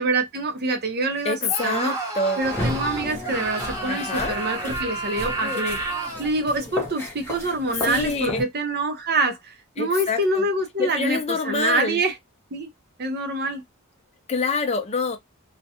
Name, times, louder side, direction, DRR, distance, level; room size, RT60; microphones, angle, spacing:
voice 1, 0.0-2.0 2.4-5.8 6.2-12.1 12.5-12.7 13.0-13.6, right 2 dB, 50° right, 0.7 m, -25 dB
voice 2, 1.2-2.4 3.9-4.3 7.8-8.4 9.8-10.4 10.8-12.0 14.3-15.2, left 4 dB, 30° left, 0.5 m, -26 dB
Screaming, 1.5-6.3, right 2 dB, 15° right, 0.8 m, -31 dB
sound 1, 2.4-8.4, left 1 dB, 10° left, 0.8 m, -33 dB
2.4 x 2.2 x 2.7 m
head